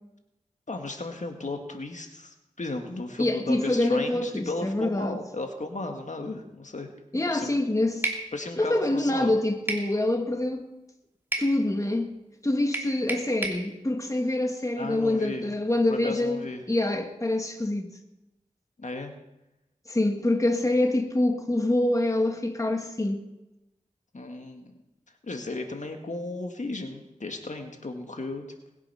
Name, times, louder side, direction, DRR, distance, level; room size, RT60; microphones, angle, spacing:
voice 1, 0.7-6.9 7.3-7.5 8.3-9.3 14.8-15.5 15.9-16.6 18.8-19.1 24.1-24.7 25.2-28.5, left 2 dB, 60° left, 1.9 m, -35 dB
voice 2, 3.2-5.2 7.1-8.1 8.6-10.6 11.4-12.1 12.4-17.9 19.9-23.2, left 1 dB, 25° left, 1.5 m, -25 dB
sound 1, 8.0-8.3 9.7-9.9 11.3-11.5 12.7-13.6, right 1 dB, 15° right, 2.6 m, -30 dB
20.5 x 8.3 x 5.7 m
wide cardioid pair, 50°, 14 cm